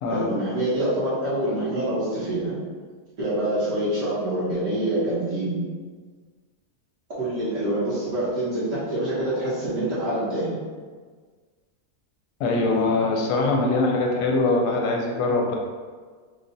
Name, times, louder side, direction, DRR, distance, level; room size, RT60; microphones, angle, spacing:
voice 1, 0.1-2.6 3.2-5.6 7.2-10.5, right 1 dB, 50° right, -9 dB, 1.6 m, -26 dB
voice 2, 12.4-15.6, left 3 dB, 75° left, 1 dB, 1.1 m, -22 dB
4.0 x 2.4 x 3.9 m, 1.5 s
omnidirectional pair, 1.7 m